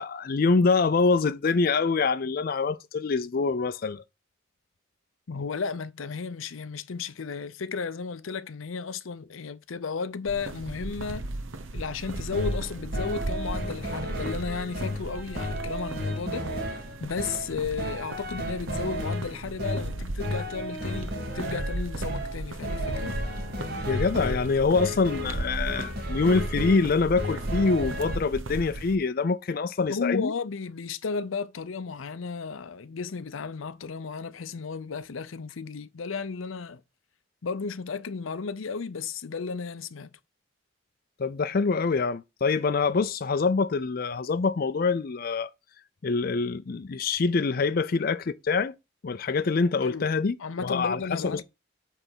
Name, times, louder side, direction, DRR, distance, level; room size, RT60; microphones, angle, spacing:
voice 1, 0.0-4.0 23.8-30.3 41.2-45.5 46.0-48.7 49.0-50.3 50.6-51.4, left 4 dB, 50° left, 0.4 m, -25 dB
voice 2, 5.3-11.3 11.7-16.5 17.0-23.1 29.9-36.8 37.4-40.1 49.8-50.1 50.4-51.4, left 5 dB, 90° left, 0.6 m, -34 dB
sound 1, 10.3-29.0, right 2 dB, 80° right, 0.9 m, -36 dB
sound 2, 12.0-28.2, left 1 dB, 50° right, 2.1 m, -34 dB
8.9 x 3.4 x 6.1 m
head